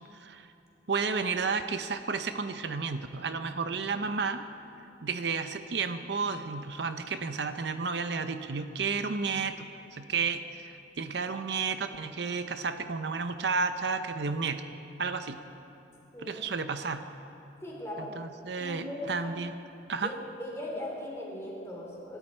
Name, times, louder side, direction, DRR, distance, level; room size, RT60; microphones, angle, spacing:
voice 1, 0.1-0.5 0.9-4.4 5.0-14.6 15.0-15.4 16.2-17.1 18.0-19.5 19.9-20.1, right 5 dB, 70° right, 9 dB, 0.7 m, -32 dB
voice 2, 17.6-18.1 18.6-19.1 20.0-22.2, left 1 dB, 15° left, -3 dB, 3.4 m, -39 dB
25.0 x 13.0 x 4.4 m, 2.7 s
head